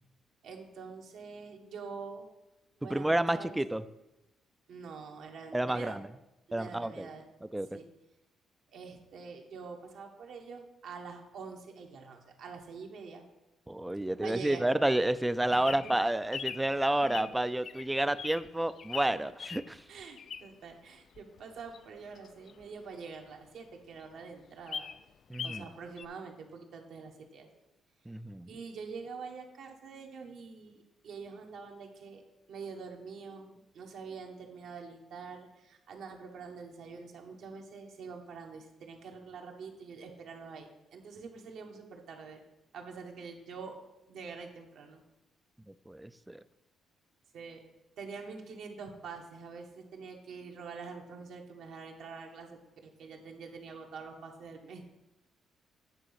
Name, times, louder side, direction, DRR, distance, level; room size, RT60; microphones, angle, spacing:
voice 1, 0.4-2.3 2.8-3.5 4.7-6.0 6.5-7.2 7.7-7.9 8.7-13.2 14.2-14.6 15.5-15.9 17.0-17.3 19.1-19.2 19.9-24.9 25.4-27.5 28.5-32.2 32.5-42.4 42.7-43.8 44.1-45.0 47.3-47.6 48.0-54.8, right 5 dB, 70° right, 2 dB, 1.4 m, -45 dB
voice 2, 2.9-3.8 5.5-6.1 6.5-7.1 7.5-7.7 13.7-19.8 25.3-25.6 28.1-28.5 45.7-46.4, right 1 dB, 10° right, 14 dB, 0.4 m, -30 dB
Bird vocalization bird call bird song, 15.2-20.7 21.1-23.3 23.7-23.8 24.0-24.1 24.4-25.7 26.0-26.1, left 7 dB, 55° left, 0.4 m, -42 dB
8.9 x 3.8 x 7.1 m, 0.93 s
cardioid pair, 90°, 0 cm